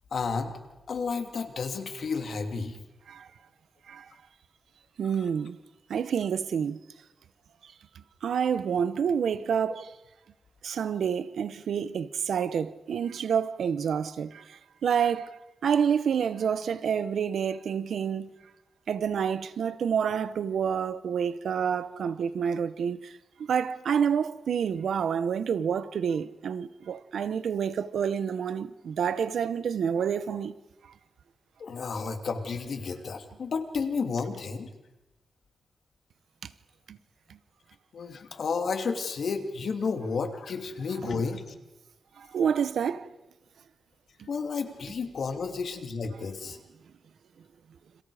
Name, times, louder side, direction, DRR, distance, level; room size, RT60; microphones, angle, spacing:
voice 1, 0.1-0.5 0.9-2.8 31.6-34.7 37.9-41.5 44.3-46.6, left 5 dB, 70° left, 2.8 m, -32 dB
voice 2, 5.0-5.6 5.9-6.8 8.2-9.9 10.6-18.3 18.9-30.5 36.4-36.5 36.9-37.0 37.3-37.4 42.2-43.1 44.2-44.3, right 7 dB, 90° right, 1.0 m, -28 dB
30.0 x 28.0 x 5.0 m
wide cardioid pair, 105°, 0 cm